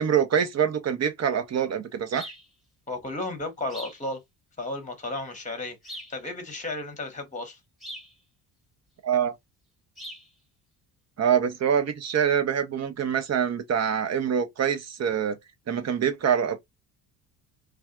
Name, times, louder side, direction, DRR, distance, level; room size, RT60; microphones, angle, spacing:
voice 1, 0.0-2.3 9.0-9.3 11.2-15.4 15.7-16.6, right 8 dB, 35° right, 0.8 m, -25 dB
sound 1, 2.1-2.5 3.7-4.0 5.8-6.2 7.8-8.1 10.0-10.3, equal, ahead, 1.3 m, -41 dB
voice 2, 2.9-4.2 4.6-7.6, left 2 dB, 15° left, 1.1 m, -34 dB
2.5 x 2.3 x 2.3 m
hypercardioid pair, 55°, 48 cm